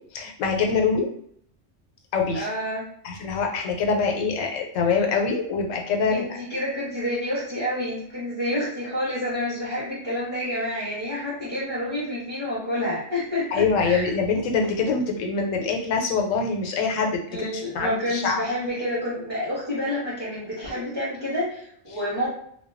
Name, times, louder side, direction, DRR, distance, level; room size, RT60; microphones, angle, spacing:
voice 1, 0.1-1.1 2.1-2.5 3.0-6.3 13.5-18.4, left 5 dB, 90° left, 2 dB, 0.9 m, -24 dB
voice 2, 2.3-2.8 6.1-14.1 17.3-22.3, left 1 dB, 25° right, -9 dB, 0.7 m, -28 dB
2.2 x 2.2 x 2.4 m, 0.66 s
omnidirectional pair, 1.3 m